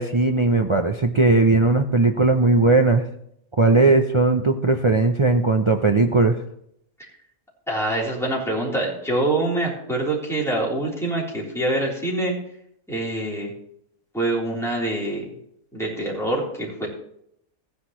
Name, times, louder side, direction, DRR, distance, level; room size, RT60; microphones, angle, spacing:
voice 1, 0.0-3.0 3.6-6.4, right 3 dB, 55° right, 4 dB, 0.3 m, -18 dB
voice 2, 7.7-12.3 12.9-13.5 14.1-15.2 15.7-16.9, right 1 dB, ahead, -5 dB, 3.5 m, -25 dB
15.5 x 10.0 x 3.1 m, 0.72 s
omnidirectional pair, 1.5 m